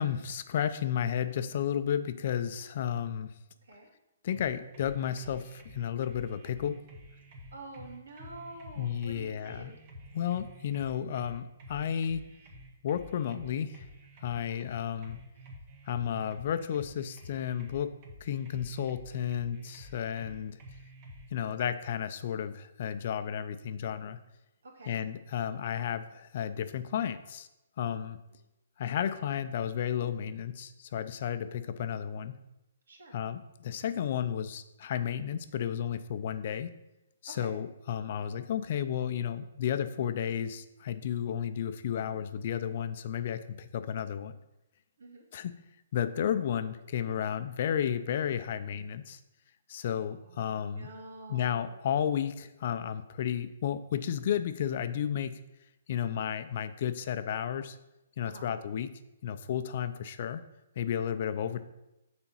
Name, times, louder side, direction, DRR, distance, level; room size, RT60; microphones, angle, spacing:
voice 1, 0.0-3.3 4.2-6.7 8.8-9.7 10.1-12.2 12.8-13.8 14.2-15.2 15.9-17.9 18.2-20.6 21.3-24.2 24.9-27.5 27.8-28.2 28.8-32.4 33.1-36.7 37.2-44.3 45.3-45.5 45.9-49.2 49.7-50.9 51.3-55.4 55.9-57.8 58.2-58.9 59.2-60.4 60.8-61.6, left 9 dB, 50° left, 11 dB, 0.6 m, -32 dB
sound 1, 4.3-21.3, equal, 40° right, 1.7 m, -50 dB
voice 2, 7.5-9.8 14.3-14.6 24.6-24.9 32.9-33.1 37.4-37.5 45.0-45.2 50.0-51.7 58.2-58.5, right 2 dB, 80° right, 0 dB, 2.4 m, -48 dB
7.1 x 4.3 x 5.6 m, 0.93 s
hypercardioid pair, 145°, 0 cm